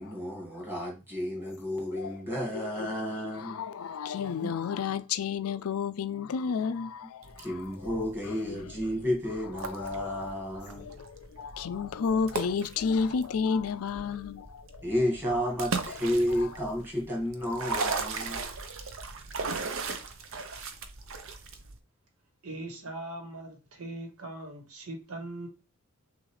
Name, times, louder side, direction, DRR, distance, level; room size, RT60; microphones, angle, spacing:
voice 1, 0.0-3.6 4.4-4.5 7.4-10.9 14.8-18.4, equal, 10° right, 1.8 m, -32 dB
voice 2, 1.9-7.6 8.3-8.7 9.6-9.9 10.8-14.8 15.9-16.5, left 6 dB, 80° left, 0.4 m, -32 dB
sound 1, 7.2-21.8, right 4 dB, 65° right, 0.7 m, -38 dB
voice 3, 22.4-25.5, right 2 dB, 85° right, 1.4 m, -40 dB
6.2 x 2.5 x 3.2 m
head